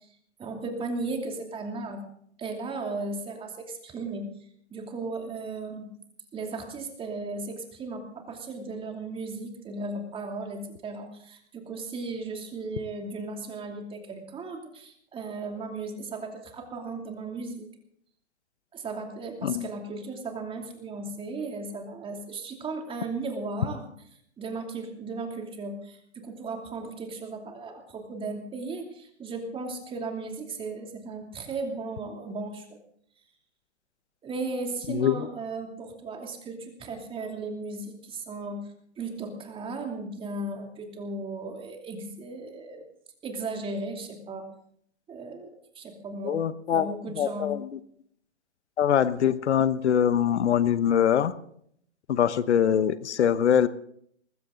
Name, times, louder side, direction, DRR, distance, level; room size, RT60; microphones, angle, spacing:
voice 1, 0.4-2.0 2.4-4.3 4.7-5.9 6.3-17.7 18.7-23.9 24.4-32.6 34.2-38.7 39.0-42.8 43.2-44.5 45.1-46.4 46.7-47.5, right 3 dB, 15° right, 3 dB, 2.8 m, -36 dB
voice 2, 34.9-35.3 46.2-46.9 47.1-47.7 48.8-51.3 52.1-53.7, left 9 dB, 70° left, 14 dB, 1.1 m, -23 dB
20.0 x 15.5 x 3.9 m, 0.66 s
hypercardioid pair, 135°, 35 cm